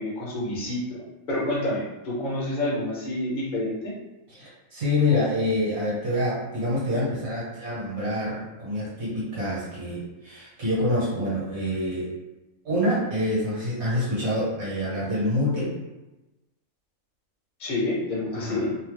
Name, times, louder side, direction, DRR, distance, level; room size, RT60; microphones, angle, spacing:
voice 1, 0.0-3.9 17.6-18.7, left 1 dB, 45° left, -5 dB, 1.0 m, -28 dB
voice 2, 4.3-12.1 12.6-15.7 18.3-18.6, left 1 dB, 55° right, -8 dB, 1.4 m, -26 dB
2.7 x 2.1 x 3.2 m, 1.0 s
omnidirectional pair, 1.4 m